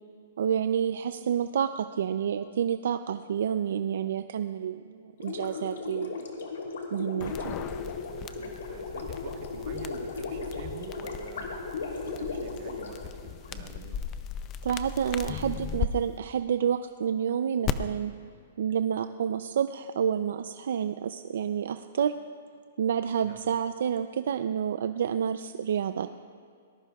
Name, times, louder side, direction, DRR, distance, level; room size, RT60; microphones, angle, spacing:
voice 1, 0.4-6.2 6.9-7.5 14.6-18.1 18.6-22.2 22.8-26.1, right 8 dB, 60° right, 10 dB, 0.4 m, -29 dB
Gurgling, 5.2-13.6, left 4 dB, 85° left, 3.0 m, -36 dB
sound 1, 7.2-15.9 17.6-17.7, left 9 dB, 20° left, 0.4 m, -37 dB
voice 2, 8.3-11.7 12.0-14.0 23.2-23.5, right 6 dB, 35° right, 5 dB, 1.2 m, -47 dB
22.5 x 19.0 x 2.4 m, 2.3 s
hypercardioid pair, 175°, 0 cm